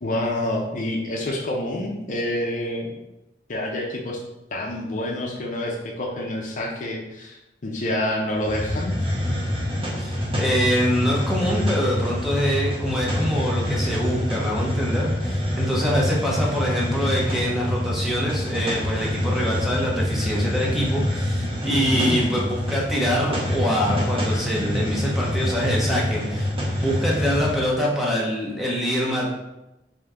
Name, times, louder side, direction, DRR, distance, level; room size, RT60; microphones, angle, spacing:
voice 1, 0.0-2.9 3.5-4.2 4.5-9.0 21.7-22.5, left 1 dB, 45° left, 0 dB, 0.5 m, -27 dB
Hiss, 8.4-27.6, left 1 dB, 30° right, 1.0 m, -26 dB
voice 2, 10.0-26.5 26.8-29.3, equal, ahead, -4 dB, 0.7 m, -25 dB
3.5 x 2.7 x 3.5 m, 0.94 s
head